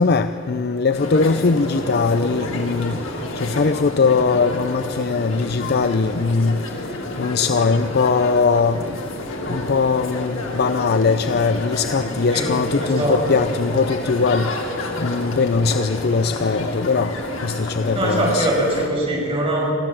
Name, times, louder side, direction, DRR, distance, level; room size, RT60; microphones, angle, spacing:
voice 1, 0.0-3.0 3.4-6.6 7.2-8.8 9.5-14.5 15.0-17.1 17.4-18.5, left 4 dB, 55° left, 10 dB, 0.6 m, -20 dB
sound 1, 0.9-18.9, left 1 dB, 85° left, 2.8 m, -29 dB
voice 2, 12.8-13.1 17.9-19.7, right 1 dB, 30° right, -3 dB, 6.0 m, -22 dB
23.5 x 15.0 x 7.6 m, 2.5 s
head